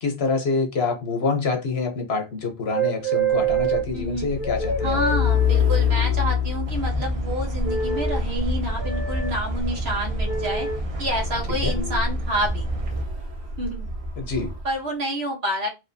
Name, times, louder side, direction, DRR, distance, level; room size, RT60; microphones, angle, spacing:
voice 1, 0.0-5.0 11.6-11.7 14.2-14.5, left 4 dB, 75° left, 1.3 m, -26 dB
sound 1, 2.7-3.8 4.4-6.1 7.6-8.2 8.8-9.3 10.2-10.8 11.7-12.0, right 5 dB, 10° right, 1.1 m, -27 dB
Truck, 3.3-14.7, left 6 dB, 65° right, 1.4 m, -27 dB
voice 2, 3.9-4.3 4.8-10.7 11.0-12.7 13.6-13.8 14.6-15.7, right 1 dB, 85° right, 1.5 m, -28 dB
sound 2, 6.7-13.1, right 1 dB, 40° right, 0.7 m, -29 dB
4.8 x 2.8 x 2.7 m
omnidirectional pair, 1.0 m